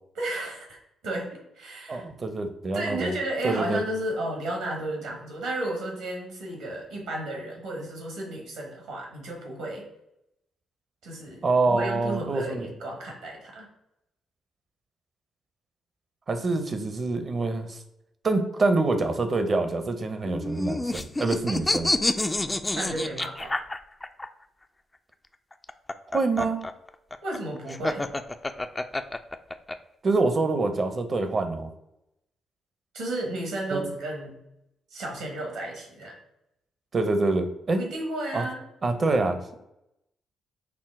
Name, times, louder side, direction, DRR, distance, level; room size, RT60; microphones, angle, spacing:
voice 1, 0.1-0.8 1.0-2.0 2.7-9.9 11.0-13.7 22.7-23.5 27.2-28.0 32.9-34.4 34.9-36.2 37.8-38.6, right 1 dB, 80° right, 0 dB, 1.4 m, -33 dB
voice 2, 1.9-3.1 3.4-3.8 11.4-12.7 16.3-17.8 18.2-21.9 26.1-26.7 30.0-31.7 33.7-33.8 36.9-37.8 38.3-38.4 38.8-39.4, right 3 dB, 45° right, 7 dB, 0.7 m, -26 dB
sound 1, 20.2-24.3 25.5-29.8, left 2 dB, 20° left, 0.3 m, -28 dB
5.9 x 2.0 x 3.6 m, 0.84 s
hypercardioid pair, 40°, 0 cm